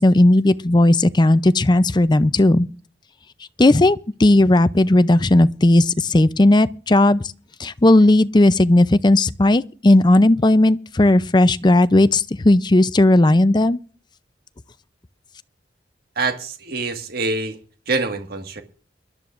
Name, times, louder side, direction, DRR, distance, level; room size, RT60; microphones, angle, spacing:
voice 1, 0.0-2.7 3.6-7.2 7.6-13.8, left 1 dB, 25° left, 0.5 m, -15 dB
voice 2, 16.2-17.6 17.9-18.6, right 3 dB, 55° right, 1.8 m, -25 dB
24.5 x 12.5 x 2.5 m
head